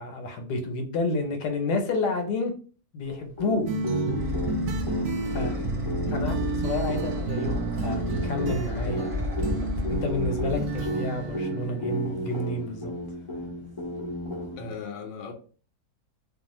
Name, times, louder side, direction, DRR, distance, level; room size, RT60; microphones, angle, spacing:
voice 1, 0.0-2.5 2.9-3.7 5.3-5.5 6.1-12.9, left 2 dB, 75° left, 1.2 m, -30 dB
sound 1, 3.4-14.7, equal, 40° left, 0.4 m, -34 dB
sound 2, 3.5-11.5, left 3 dB, 15° right, 0.9 m, -34 dB
sound 3, 3.7-12.1, right 4 dB, 70° right, 0.8 m, -32 dB
voice 2, 5.5-6.2 14.6-15.3, left 5 dB, 60° left, 0.8 m, -39 dB
2.6 x 2.4 x 2.9 m
omnidirectional pair, 1.8 m